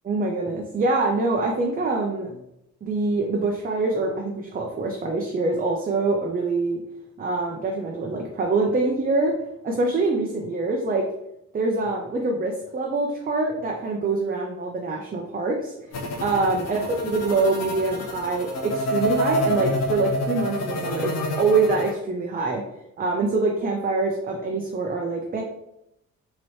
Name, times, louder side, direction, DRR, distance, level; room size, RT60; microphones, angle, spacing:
voice 1, 0.0-2.4 2.8-6.8 7.2-9.3 9.6-11.1 11.5-15.7 16.2-21.1 21.4-22.6 23.0-25.4, right 3 dB, 30° right, 0 dB, 0.6 m, -24 dB
sound 1, 15.9-21.9, equal, 60° left, 0.8 m, -27 dB
4.2 x 3.0 x 3.1 m, 0.82 s
cardioid pair, 90°, 30 cm